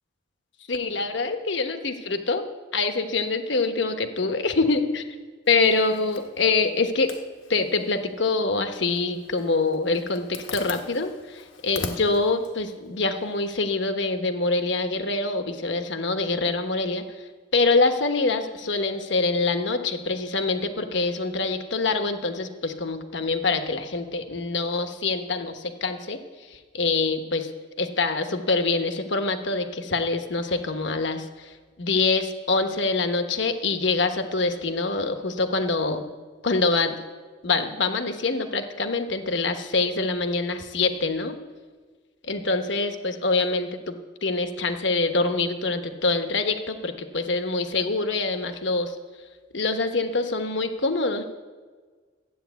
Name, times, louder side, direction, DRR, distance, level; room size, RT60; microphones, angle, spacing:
voice 1, 0.7-2.4 2.7-5.0 5.5-7.1 7.5-17.0 17.5-26.2 26.5-27.5 27.8-36.0 36.4-37.0 37.4-41.4 42.2-43.9 44.2-48.9 49.5-51.2, left 3 dB, 65° left, 7 dB, 1.1 m, -25 dB
Zipper (clothing), 5.5-13.6, left 4 dB, 80° left, 1.3 m, -42 dB
13.0 x 8.9 x 8.2 m, 1.5 s
head